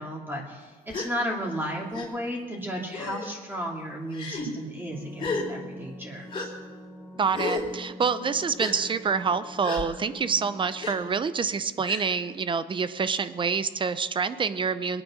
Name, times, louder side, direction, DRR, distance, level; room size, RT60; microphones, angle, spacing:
voice 1, 0.0-6.5, equal, 10° right, -1 dB, 2.9 m, -34 dB
Gasp, 0.9-1.1 1.9-2.1 2.9-3.3 4.1-4.5 5.2-5.5 6.3-6.5 7.3-7.7 8.6-8.7 9.6-9.8 10.8-10.9 11.8-12.1, left 4 dB, 35° left, 4.0 m, -32 dB
sound 1, 4.9-11.1, left 1 dB, 15° left, 3.0 m, -45 dB
voice 2, 7.2-15.0, right 5 dB, 30° right, 14 dB, 0.7 m, -27 dB
22.0 x 9.3 x 6.5 m, 1.5 s
cardioid pair, 110°, 17 cm